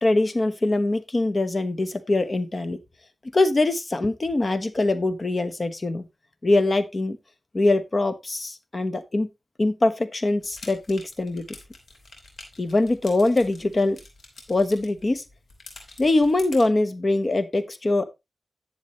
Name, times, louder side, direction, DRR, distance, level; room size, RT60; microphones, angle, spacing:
voice 1, 0.0-2.8 3.3-6.1 6.4-7.2 7.5-9.3 9.6-11.5 12.6-14.0 14.5-15.2 16.0-18.0, left 2 dB, 45° left, 10 dB, 1.1 m, -23 dB
sound 1, 10.4-16.7, left 2 dB, 85° left, 2.9 m, -47 dB
10.5 x 7.2 x 3.1 m, 0.23 s
cardioid pair, 55°, 0 cm